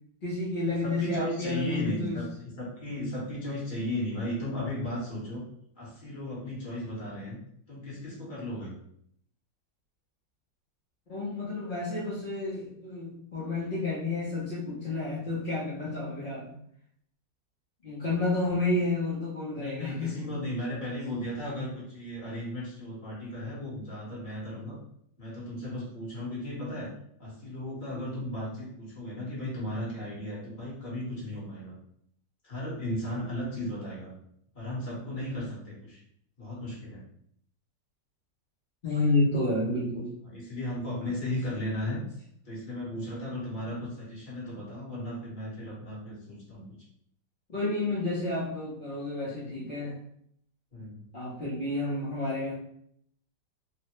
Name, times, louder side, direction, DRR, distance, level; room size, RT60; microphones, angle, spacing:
voice 1, 0.2-2.2 11.1-16.5 17.8-20.3 38.8-40.2 47.5-50.0 51.1-52.5, left 2 dB, 50° left, -9 dB, 0.6 m, -30 dB
voice 2, 0.8-2.3 2.6-5.4 5.8-7.4 7.7-8.7 19.5-24.8 25.2-26.9 27.2-31.7 32.4-34.1 34.5-36.0 36.4-37.0 40.2-42.0 42.4-46.8 50.7-51.0, left 1 dB, 35° left, -7 dB, 1.0 m, -35 dB
3.2 x 2.1 x 2.9 m, 0.68 s
omnidirectional pair, 2.0 m